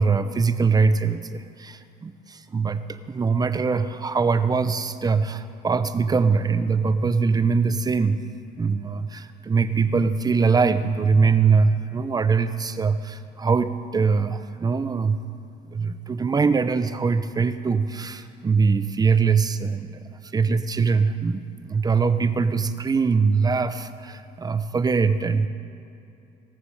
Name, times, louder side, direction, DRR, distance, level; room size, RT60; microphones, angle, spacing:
voice 1, 0.0-8.2 8.6-15.2 15.7-20.0 20.3-25.5, right 5 dB, 25° right, 11 dB, 0.7 m, -22 dB
18.5 x 7.0 x 6.4 m, 2.7 s
cardioid pair, 110°, 17 cm